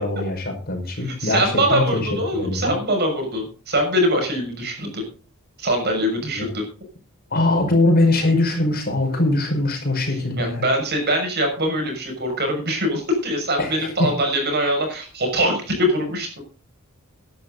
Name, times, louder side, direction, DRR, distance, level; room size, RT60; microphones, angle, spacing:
voice 1, 0.0-2.7 6.3-6.5 7.3-10.7 13.6-14.1, left 2 dB, 45° left, 4 dB, 5.2 m, -22 dB
voice 2, 1.0-5.0 5.6-6.6 10.4-16.4, equal, 50° right, 3 dB, 6.4 m, -23 dB
17.0 x 11.0 x 4.0 m, 0.37 s
head